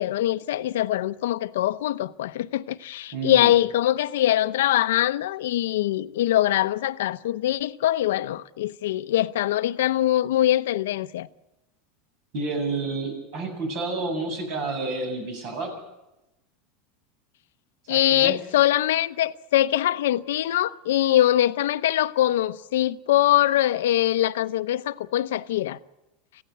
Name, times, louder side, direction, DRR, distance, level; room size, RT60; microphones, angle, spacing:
voice 1, 0.0-11.3 17.9-25.8, left 13 dB, 90° left, 0.7 m, -23 dB
voice 2, 3.1-3.5 12.3-15.8 17.9-18.4, right 3 dB, 60° right, 7.8 m, -30 dB
26.0 x 16.0 x 7.9 m
supercardioid pair, 135°, 0 cm